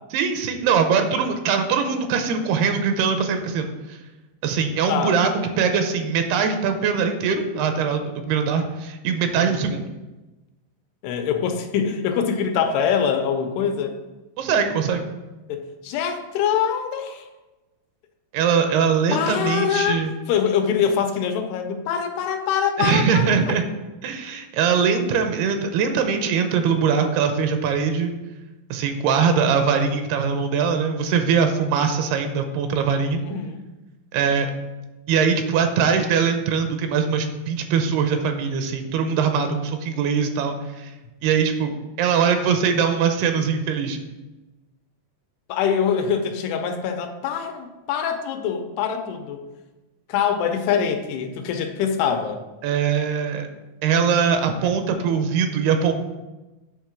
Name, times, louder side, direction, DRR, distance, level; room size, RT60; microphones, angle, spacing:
voice 1, 0.1-4.0 4.4-9.9 14.4-15.1 18.3-20.1 22.8-23.6 24.0-28.1 28.7-33.2 34.1-34.5 35.1-40.9 41.2-41.7 42.0-44.0 52.6-53.5 53.8-55.9, right 6 dB, 85° right, 6 dB, 2.6 m, -22 dB
voice 2, 11.0-14.0 15.5-17.3 19.1-23.4 33.2-33.6 45.5-49.4 50.1-52.4, left 7 dB, 90° left, 6 dB, 2.7 m, -24 dB
8.8 x 3.7 x 6.2 m, 1.1 s
omnidirectional pair, 4.7 m